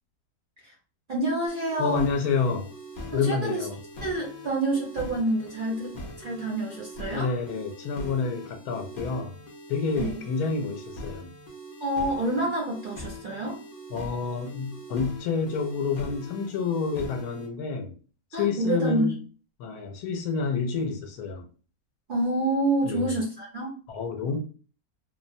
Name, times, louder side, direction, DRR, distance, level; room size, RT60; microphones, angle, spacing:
voice 1, 1.1-2.0 3.1-3.7 4.0-7.3 10.0-10.2 11.8-13.6 18.3-19.1 22.1-23.7, right 1 dB, 50° right, 0.6 m, -28 dB
sound 1, 1.5-17.5, equal, 60° left, 0.5 m, -42 dB
voice 2, 1.8-2.7 3.1-3.8 7.1-9.4 9.7-11.3 13.9-17.9 18.4-19.2 19.6-21.4 22.8-23.2 23.9-24.4, left 5 dB, 80° left, 1.0 m, -28 dB
2.7 x 2.0 x 2.6 m
omnidirectional pair, 1.6 m